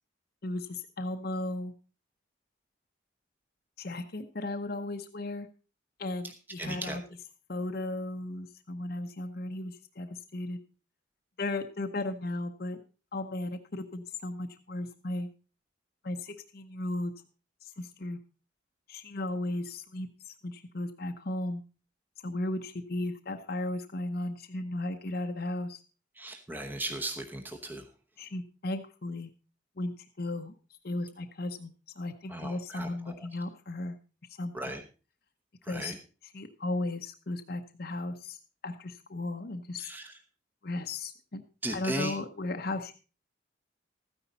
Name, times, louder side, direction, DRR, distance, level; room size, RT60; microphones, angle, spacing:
voice 1, 0.4-1.7 3.8-5.5 6.0-7.0 7.5-10.6 11.4-12.8 13.1-15.3 16.0-17.1 17.6-18.2 18.9-20.1 20.4-21.6 22.2-25.8 28.2-29.3 29.8-30.5 30.8-34.0 34.4-34.7 35.7-35.9 36.2-38.4 38.6-39.9 40.6-41.4 41.7-42.9, left 2 dB, 50° left, 5 dB, 0.8 m, -35 dB
voice 2, 6.6-7.0 26.2-27.8 32.3-33.2 34.5-34.8 35.7-35.9 39.8-40.1 41.6-42.1, right 1 dB, 10° right, 5 dB, 1.0 m, -36 dB
13.5 x 9.9 x 4.1 m, 0.34 s
head